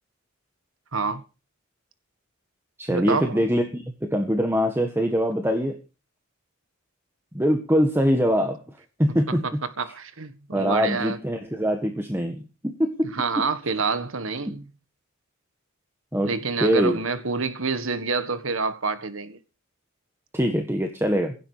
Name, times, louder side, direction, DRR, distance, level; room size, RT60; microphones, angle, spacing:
voice 1, 0.9-1.2 2.9-3.4 9.3-9.4 9.8-11.2 13.1-14.7 16.2-19.4, right 4 dB, 65° right, 1.6 m, -27 dB
voice 2, 2.8-5.8 7.3-9.6 10.5-13.1 13.4-13.5 14.5-14.6 16.1-16.3 16.6-17.0 20.3-21.3, equal, 10° right, 1.6 m, -23 dB
16.5 x 11.5 x 4.9 m
head